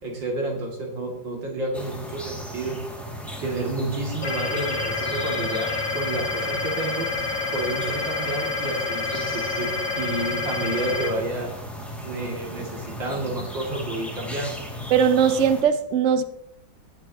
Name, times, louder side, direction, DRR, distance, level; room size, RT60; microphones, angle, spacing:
voice 1, 0.0-2.8 3.4-7.1 7.5-11.5 12.0-14.6, right 2 dB, 75° right, 3.2 m, -30 dB
sound 1, 1.7-15.6, equal, ahead, 2.1 m, -36 dB
sound 2, 4.2-11.1, left 4 dB, 40° left, 2.6 m, -28 dB
voice 2, 14.9-16.2, right 7 dB, 60° right, 0.8 m, -19 dB
18.0 x 7.7 x 2.9 m
omnidirectional pair, 2.0 m